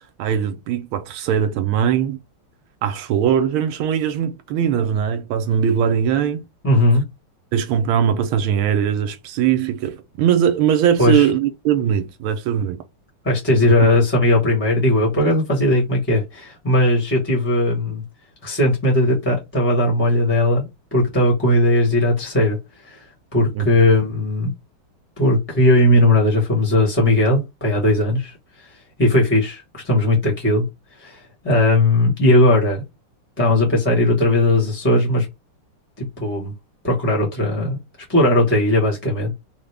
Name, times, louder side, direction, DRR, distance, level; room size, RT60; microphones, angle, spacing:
voice 1, 0.2-2.2 2.8-6.4 7.5-12.8 23.5-23.7, right 8 dB, 80° right, 1.4 m, -20 dB
voice 2, 6.6-7.0 11.0-11.3 13.2-18.0 18.4-22.6 22.8-23.0 23.3-24.5 25.2-28.7 29.0-30.6 31.0-32.8 33.4-35.3 36.0-36.5 36.8-37.8 38.1-39.3, left 1 dB, 10° left, 0.8 m, -18 dB
3.8 x 2.2 x 3.3 m
omnidirectional pair, 2.4 m